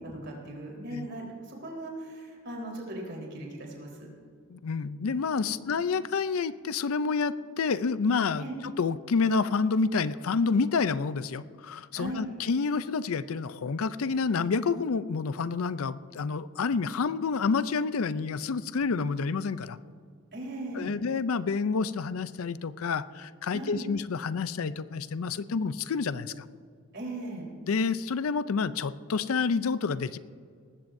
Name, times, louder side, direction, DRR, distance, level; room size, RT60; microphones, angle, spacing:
voice 1, 0.0-3.9 5.4-5.7 8.4-8.5 11.9-12.2 20.3-20.9 23.5-23.8 26.9-27.5, right 1 dB, 55° right, -1 dB, 3.9 m, -38 dB
voice 2, 4.5-19.8 20.8-26.4 27.7-30.2, left 4 dB, 75° left, 15 dB, 0.5 m, -29 dB
19.0 x 15.0 x 2.6 m, 2.1 s
head